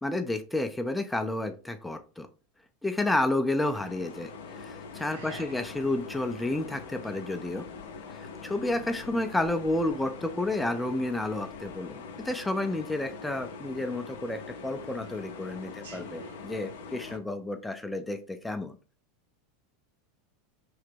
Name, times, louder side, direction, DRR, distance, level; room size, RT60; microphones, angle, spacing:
voice 1, 0.0-2.3 2.8-7.7 8.1-18.7, left 2 dB, 5° left, 8 dB, 0.4 m, -31 dB
sound 1, 3.6-17.2, left 4 dB, 65° left, 0.5 m, -43 dB
voice 2, 5.1-5.7 15.7-16.4, right 2 dB, 70° right, -2 dB, 1.5 m, -46 dB
3.1 x 2.8 x 3.2 m, 0.36 s
figure-of-eight pair, 80°, 0 cm